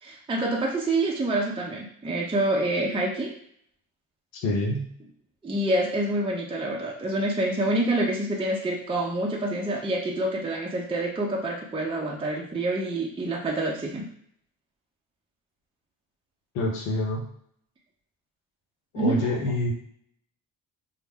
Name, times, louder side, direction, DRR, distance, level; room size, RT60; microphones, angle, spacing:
voice 1, 0.0-3.3 5.4-14.1 19.0-19.2, right 1 dB, 15° right, -1 dB, 0.5 m, -27 dB
voice 2, 4.4-4.9 16.5-17.2 18.9-19.7, left 1 dB, 85° left, 1 dB, 0.7 m, -26 dB
2.1 x 2.0 x 3.3 m, 0.67 s
hypercardioid pair, 50°, 44 cm